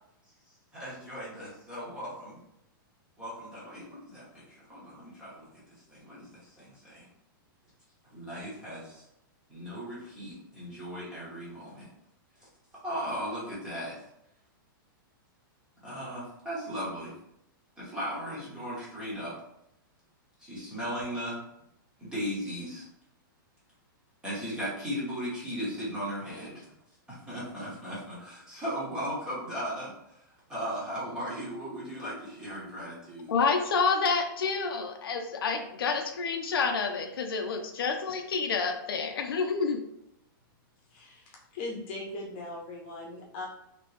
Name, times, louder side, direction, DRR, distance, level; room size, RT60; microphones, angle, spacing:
voice 1, 0.7-2.4 3.2-4.2 4.5-5.5 5.9-7.1 8.1-9.0 9.5-11.9 12.8-14.0 15.8-17.1 17.8-19.4 20.4-21.4 22.0-22.9 24.2-26.6 27.1-29.9 30.5-33.3, equal, 5° right, -8 dB, 1.0 m, -37 dB
voice 2, 33.3-39.8, left 5 dB, 85° left, 4 dB, 0.6 m, -28 dB
voice 3, 40.9-43.5, left 2 dB, 35° left, -2 dB, 1.0 m, -39 dB
3.0 x 2.9 x 3.2 m, 0.80 s
supercardioid pair, 175°, 12 cm